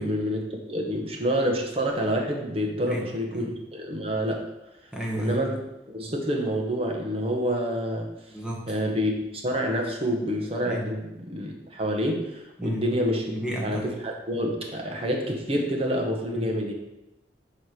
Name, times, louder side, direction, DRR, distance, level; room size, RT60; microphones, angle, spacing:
voice 1, 0.0-4.5 5.2-5.6 5.9-8.1 8.7-13.3 13.6-16.7, equal, 35° right, 1 dB, 1.2 m, -28 dB
voice 2, 4.9-5.4 8.3-8.7 10.6-10.9 12.6-12.8 13.3-13.9 16.3-16.5, right 1 dB, 5° right, -2 dB, 1.4 m, -32 dB
7.8 x 3.3 x 6.0 m, 0.95 s
head